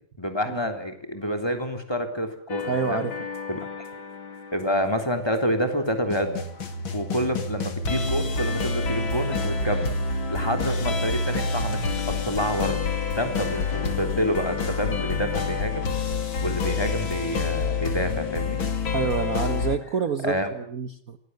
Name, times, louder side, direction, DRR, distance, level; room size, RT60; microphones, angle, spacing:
voice 1, 0.2-3.1 3.5-3.7 4.5-6.4 6.9-9.9 10.3-12.8 13.1-15.9 16.4-18.6 20.2-20.5, equal, 10° left, 5 dB, 3.4 m, -28 dB
sound 1, 2.5-19.8, left 4 dB, 85° left, 3.2 m, -28 dB
voice 2, 2.7-3.1 18.9-21.2, right 6 dB, 50° right, 9 dB, 1.5 m, -28 dB
27.0 x 20.0 x 7.9 m, 0.62 s
omnidirectional pair, 2.1 m